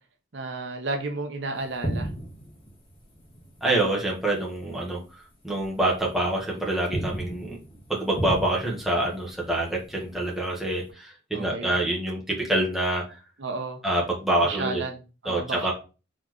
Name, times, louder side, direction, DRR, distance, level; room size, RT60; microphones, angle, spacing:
voice 1, 0.3-2.1 11.3-11.7 13.4-13.8 14.4-15.7, right 3 dB, 65° right, 4 dB, 0.8 m, -32 dB
sound 1, 1.6-4.6 4.8-5.1 5.6-6.4 6.7-10.9, right 1 dB, 30° left, 1.8 m, -36 dB
voice 2, 3.6-5.0 5.4-7.6 7.9-13.2 13.8-14.8 15.2-15.7, right 1 dB, ahead, -4 dB, 1.3 m, -26 dB
4.2 x 3.8 x 3.0 m, 0.32 s
head